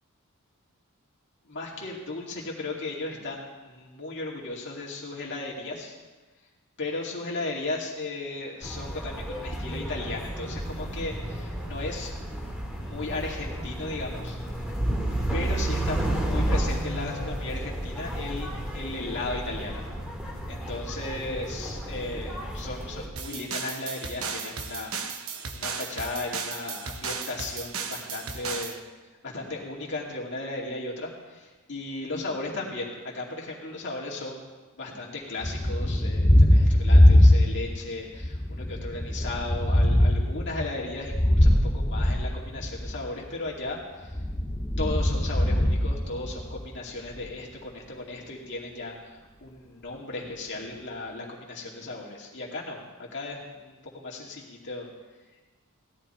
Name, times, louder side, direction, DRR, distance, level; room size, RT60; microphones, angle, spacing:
voice 1, 1.4-6.0 6.8-12.1 12.8-14.4 15.3-19.8 20.5-25.2 25.5-28.8 29.2-34.5 34.7-44.2 44.8-54.9, left 2 dB, 55° left, -3 dB, 2.4 m, -36 dB
sound 1, 8.6-23.1, right 1 dB, 5° right, 2.7 m, -32 dB
sound 2, 23.2-28.8, right 5 dB, 65° right, 1.0 m, -35 dB
Thunder, 35.4-37.8 38.2-43.0 44.0-46.7, left 1 dB, 15° left, 0.7 m, -21 dB
17.0 x 11.5 x 4.4 m, 1.3 s
head